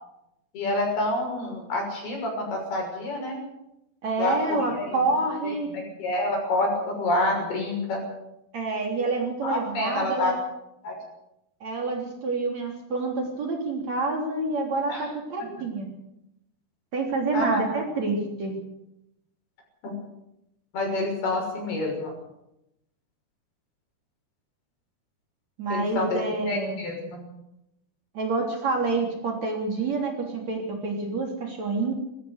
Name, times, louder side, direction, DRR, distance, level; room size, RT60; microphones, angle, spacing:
voice 1, 0.5-3.4 4.2-4.4 4.7-5.0 5.4-8.0 9.4-10.3 10.8-11.0 14.9-15.1 17.3-17.6 19.8-19.9 20.7-22.1 25.7-26.2 26.5-27.2, left 2 dB, 70° left, 1 dB, 8.3 m, -28 dB
voice 2, 4.0-5.7 8.5-10.4 11.6-15.9 16.9-18.5 25.6-26.8 28.1-31.9, right 3 dB, 45° right, 1 dB, 4.4 m, -27 dB
21.5 x 15.0 x 8.1 m, 0.85 s
omnidirectional pair, 4.6 m